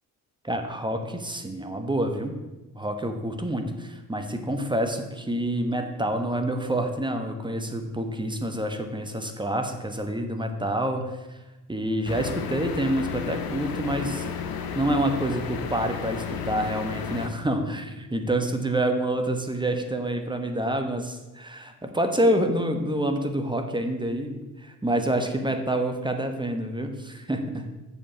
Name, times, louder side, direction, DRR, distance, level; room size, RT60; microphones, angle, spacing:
voice 1, 0.4-2.4 2.7-11.4 11.7-14.3 14.7-27.7, right 1 dB, 10° right, 5 dB, 1.2 m, -27 dB
sound 1, 12.1-17.3, left 7 dB, 55° left, 1.3 m, -33 dB
7.1 x 5.1 x 6.9 m, 1.1 s
hypercardioid pair, 45°, 44 cm